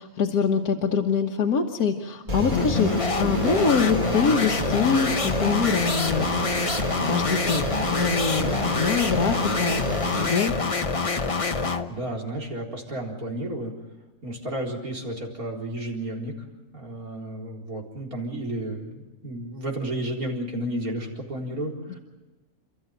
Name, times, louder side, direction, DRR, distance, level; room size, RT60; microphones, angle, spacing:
voice 1, 0.0-6.3 7.1-9.8 10.2-10.5, left 5 dB, 90° left, 1 dB, 1.8 m, -24 dB
sound 1, 2.3-11.9, left 4 dB, 30° left, 0.8 m, -26 dB
sound 2, 2.3-10.3, right 3 dB, 35° right, 1.8 m, -31 dB
voice 2, 11.6-13.7 14.2-16.3 16.7-22.0, right 1 dB, 75° right, -1 dB, 4.6 m, -32 dB
30.0 x 14.0 x 9.1 m, 1.1 s
omnidirectional pair, 1.5 m